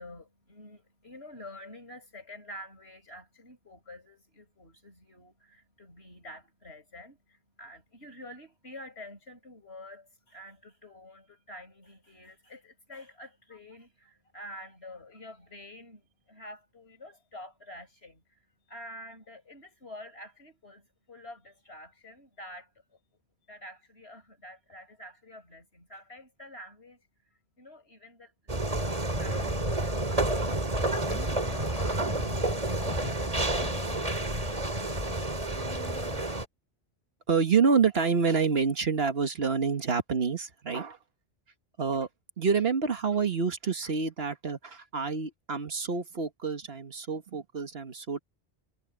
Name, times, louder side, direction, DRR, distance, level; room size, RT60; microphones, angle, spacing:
voice 1, 0.0-23.0 23.5-31.8, left 1 dB, 75° left, 7.3 m, -48 dB
sound 1, 28.5-36.5, right 1 dB, 35° right, 3.1 m, -30 dB
sound 2, 29.2-36.3, left 2 dB, 20° left, 1.0 m, -42 dB
voice 2, 37.3-41.0 41.8-42.1 42.4-48.2, right 5 dB, 65° right, 1.7 m, -27 dB
omnidirectional pair, 1.1 m